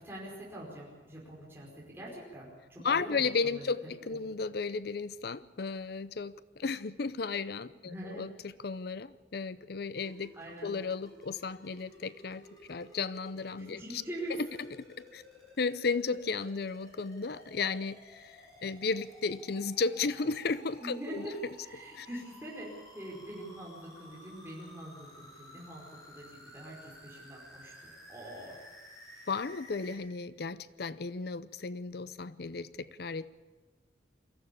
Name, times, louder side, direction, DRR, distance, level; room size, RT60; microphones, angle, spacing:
voice 1, 0.0-3.7 4.1-4.2 7.8-8.3 10.3-10.7 13.6-14.6 20.8-21.3 21.6-28.6, right 1 dB, 15° right, -5 dB, 5.0 m, -44 dB
voice 2, 2.8-10.3 10.6-14.0 14.4-14.5 15.1-15.2 15.6-21.3 21.9-22.1 29.3-33.3, left 4 dB, 60° left, 16 dB, 0.6 m, -34 dB
sound 1, 10.0-29.9, equal, 20° left, 6.6 m, -54 dB
23.0 x 15.0 x 8.5 m, 1.3 s
head